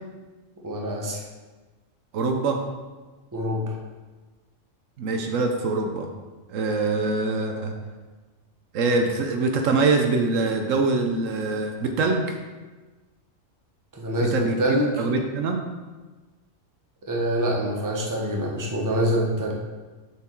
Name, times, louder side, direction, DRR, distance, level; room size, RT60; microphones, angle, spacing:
voice 1, 0.6-1.2 3.3-3.8 13.9-14.9 17.1-19.5, equal, 15° right, -2 dB, 0.9 m, -25 dB
voice 2, 2.1-2.6 5.0-6.1 6.5-7.7 8.7-12.4 14.2-15.6, right 3 dB, 75° right, 4 dB, 1.1 m, -24 dB
6.9 x 4.6 x 4.4 m, 1.3 s
omnidirectional pair, 1.4 m